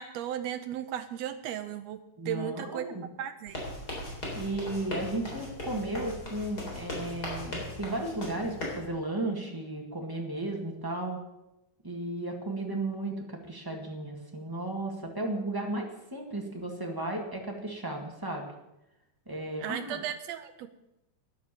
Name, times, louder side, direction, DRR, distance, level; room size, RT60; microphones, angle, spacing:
voice 1, 0.0-2.0 2.2-2.9 3.2-3.6 19.6-20.7, right 10 dB, 85° right, 9 dB, 1.5 m, -35 dB
voice 2, 2.2-3.1 4.3-11.2 11.8-18.5 19.3-20.0, right 2 dB, 25° right, 1 dB, 0.4 m, -34 dB
sound 1, 3.5-8.8, left 1 dB, 30° left, 3.9 m, -38 dB
12.0 x 10.5 x 7.4 m, 0.90 s
omnidirectional pair, 3.8 m